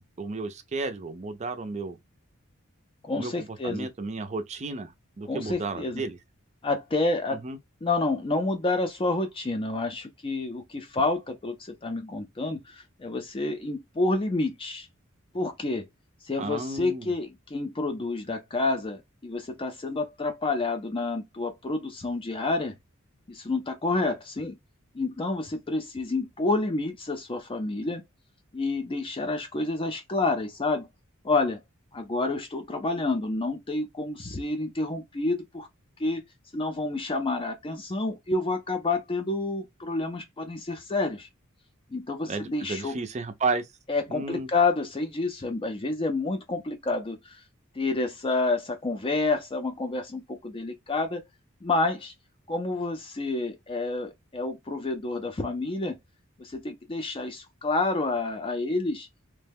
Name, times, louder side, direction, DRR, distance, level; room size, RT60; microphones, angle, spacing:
voice 1, 0.0-2.0 3.2-3.3 3.6-4.9 5.2-6.2 7.3-7.6 16.4-17.1 42.3-43.6 44.1-44.5, right 3 dB, 35° right, 0.5 m, -32 dB
voice 2, 3.0-3.9 5.2-6.0 6.6-7.4 7.8-14.9 15.3-15.8 16.2-22.7 23.3-24.6 24.9-28.0 28.5-30.9 31.2-31.6 31.9-35.7 36.0-36.2 36.5-41.3 41.9-42.9 43.9-47.4 47.7-51.2 51.6-52.1 52.5-56.0 56.4-59.1, left 3 dB, 25° left, 0.4 m, -29 dB
3.1 x 2.2 x 3.4 m
head